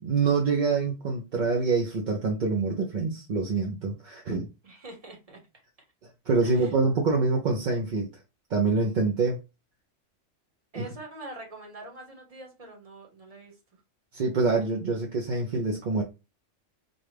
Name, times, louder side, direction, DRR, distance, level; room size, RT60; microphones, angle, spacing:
voice 1, 0.0-4.5 6.3-8.1 8.5-9.4 10.7-10.8 14.1-16.0, right 4 dB, 50° right, 0.6 m, -26 dB
voice 2, 4.6-5.4 6.4-6.7 10.7-13.8, right 2 dB, 30° right, 1.1 m, -44 dB
4.0 x 2.3 x 3.2 m
omnidirectional pair, 1.3 m